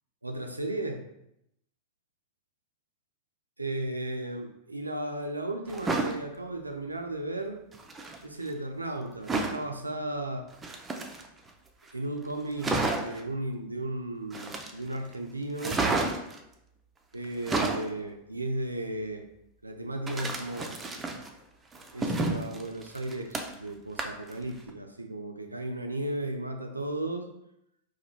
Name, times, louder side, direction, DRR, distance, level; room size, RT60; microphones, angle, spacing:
voice 1, 0.2-1.0 3.6-7.6 8.2-10.5 11.9-15.8 17.1-19.2 19.6-20.8 21.9-27.3, right 1 dB, 85° right, 4 dB, 0.4 m, -35 dB
sound 1, 5.7-6.2 7.7-8.2 9.3-9.6 10.5-11.5 11.9-12.0 12.3-12.4 12.6-13.2 14.3-15.0 15.6-16.4 17.2-17.9 20.1-21.3 21.7-23.7 24.0-24.3 24.7-24.8, right 3 dB, 15° right, 0.4 m, -30 dB
3.0 x 2.2 x 4.1 m, 0.81 s
figure-of-eight pair, 90°, 0 cm